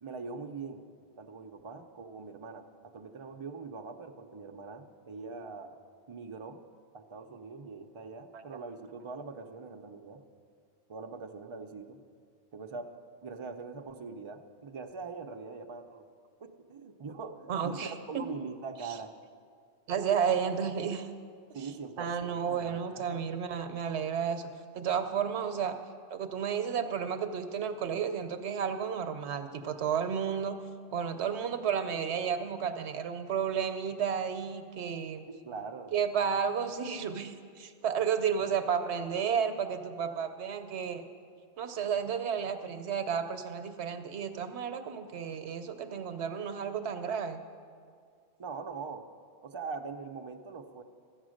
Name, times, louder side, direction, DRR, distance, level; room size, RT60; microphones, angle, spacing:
voice 1, 0.0-0.8 1.2-5.8 6.1-6.6 6.9-10.2 10.9-12.0 12.5-12.9 13.2-16.1 16.4-19.2 21.5-23.2 35.3-36.0 36.4-36.5 48.4-49.0 49.4-50.8, right 4 dB, 35° right, 4 dB, 0.5 m, -42 dB
voice 2, 17.5-18.2 19.9-21.1 22.0-24.5 24.7-25.7 26.1-30.6 30.9-35.3 35.9-41.0 41.6-47.4, right 7 dB, 75° right, 8 dB, 1.0 m, -32 dB
13.0 x 8.1 x 6.4 m, 2.2 s
omnidirectional pair, 1.2 m